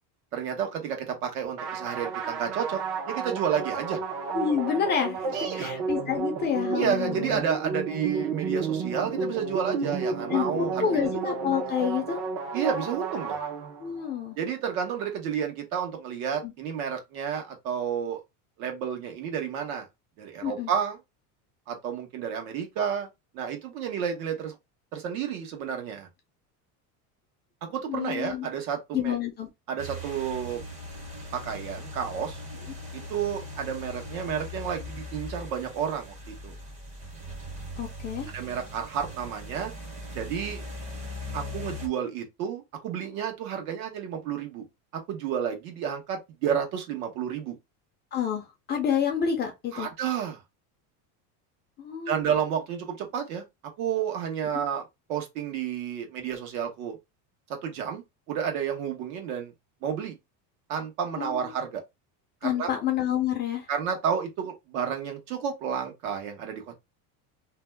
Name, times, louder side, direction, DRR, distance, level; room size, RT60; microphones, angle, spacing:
voice 1, 0.3-4.0 5.3-5.7 6.7-11.1 12.5-13.4 14.4-18.2 18.6-19.9 20.2-21.0 21.7-23.1 23.3-24.5 24.9-26.1 27.6-29.2 29.7-30.6 31.3-32.4 32.9-36.5 38.3-39.7 40.1-40.6 41.3-44.6 44.9-47.6 49.7-50.4 52.1-53.4 53.8-54.8 55.1-57.0 57.5-59.5 59.8-60.2 60.7-61.8 62.4-62.7 63.7-66.8, right 8 dB, 75° right, 1.2 m, -31 dB
sound 1, 1.6-14.1, right 4 dB, 55° right, 0.8 m, -32 dB
voice 2, 4.3-7.4 10.3-12.2 13.8-14.4 16.4-16.5 20.4-20.7 27.9-28.5 28.9-29.5 37.8-38.3 48.1-49.9 51.8-52.2 61.1-61.4 62.4-63.7, left 8 dB, 25° left, 0.4 m, -28 dB
sound 2, 29.8-41.9, left 1 dB, 15° right, 0.7 m, -40 dB
2.7 x 2.2 x 3.3 m
cardioid pair, 160°, 44 cm